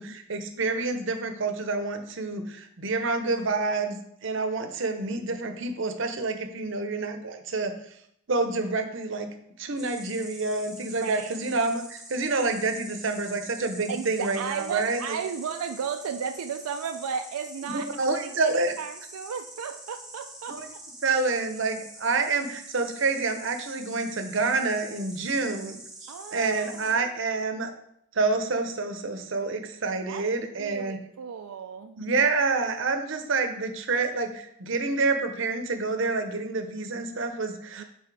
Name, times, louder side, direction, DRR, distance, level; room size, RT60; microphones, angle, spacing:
voice 1, 0.0-7.7 8.3-9.3 9.6-15.2 17.6-18.7 20.5-20.7 21.0-27.7 28.1-31.0 32.0-37.8, right 3 dB, 55° right, 6 dB, 0.7 m, -28 dB
Insect, 9.8-26.9, right 2 dB, ahead, 0.8 m, -45 dB
voice 2, 11.0-11.3 13.9-17.9 18.2-20.8 26.1-27.0 30.1-32.0 37.8-37.9, right 6 dB, 90° right, 6 dB, 0.4 m, -35 dB
5.8 x 4.1 x 4.7 m, 0.73 s
head